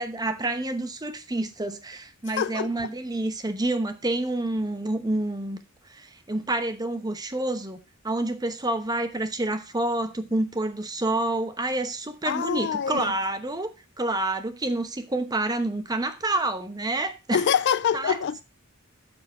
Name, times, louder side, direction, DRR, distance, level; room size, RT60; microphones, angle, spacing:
voice 1, 0.0-5.6 5.9-7.8 8.0-13.7 14.0-17.4 17.9-18.2, right 2 dB, 20° right, 0.9 m, -28 dB
voice 2, 2.4-2.9 12.3-13.1 17.3-18.4, left 7 dB, 55° left, 0.4 m, -25 dB
12.5 x 4.5 x 4.9 m
head